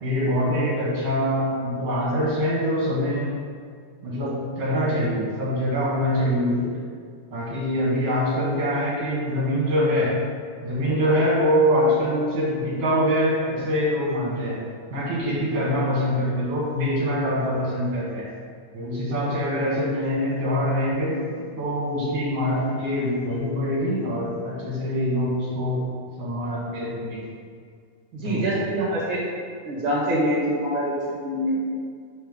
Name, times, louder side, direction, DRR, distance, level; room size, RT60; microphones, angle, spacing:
voice 1, 0.0-3.3 4.0-6.7 7.3-10.1 10.6-14.6 14.9-18.2 18.7-21.2 21.6-25.8 26.2-27.2 28.2-28.9, equal, 55° right, -6 dB, 1.4 m, -24 dB
voice 2, 28.1-29.2 29.6-31.6, right 1 dB, 75° right, -6 dB, 1.2 m, -25 dB
6.6 x 3.4 x 5.2 m, 2.1 s
omnidirectional pair, 4.4 m